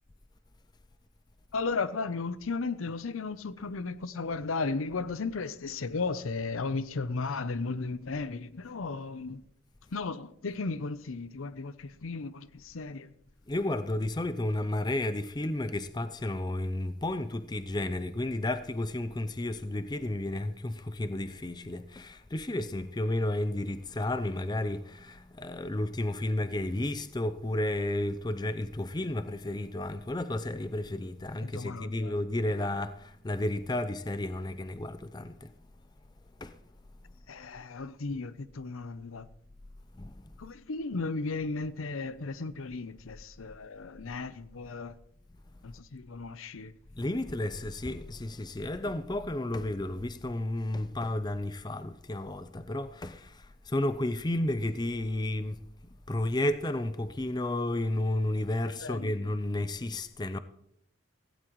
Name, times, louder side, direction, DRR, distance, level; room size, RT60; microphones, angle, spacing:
voice 1, 1.5-9.4 9.9-13.1 31.4-32.1 37.3-39.3 40.4-44.9 45.6-46.7 58.8-59.1, left 3 dB, 85° left, 0.7 m, -35 dB
voice 2, 13.5-35.5 36.4-36.6 39.9-40.3 46.9-55.6 56.1-60.4, left 1 dB, 20° left, 0.5 m, -32 dB
16.5 x 16.5 x 3.1 m
head